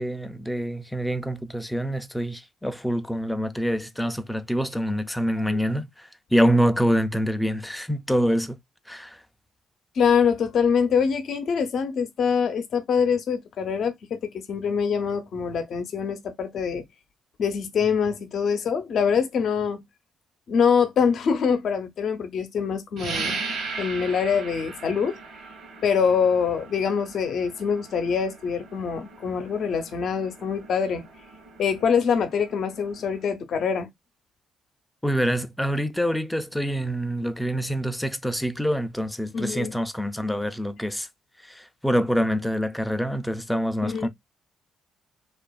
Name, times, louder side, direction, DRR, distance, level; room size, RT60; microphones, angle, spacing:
voice 1, 0.0-8.6 8.9-9.2 35.0-41.1 41.5-44.1, equal, 5° left, 0.4 m, -26 dB
voice 2, 10.0-13.9 14.3-16.8 17.4-19.8 20.5-23.4 23.8-25.1 25.8-31.0 31.6-33.9 39.3-39.8 43.8-44.1, left 6 dB, 65° left, 0.6 m, -24 dB
sound 1, 23.0-33.3, right 4 dB, 70° right, 0.9 m, -38 dB
2.7 x 2.3 x 2.2 m
cardioid pair, 90°, 0 cm